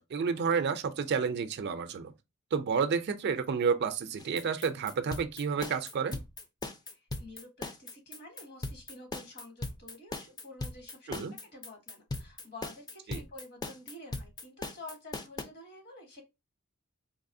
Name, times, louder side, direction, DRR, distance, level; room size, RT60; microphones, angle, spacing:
voice 1, 0.0-2.1 2.5-6.2 11.1-11.3 13.1-13.2, right 6 dB, 50° right, 0.4 m, -30 dB
sound 1, 4.2-15.4, left 2 dB, 20° left, 0.4 m, -39 dB
voice 2, 6.9-16.2, left 1 dB, 50° left, 1.3 m, -49 dB
4.0 x 2.9 x 2.6 m
head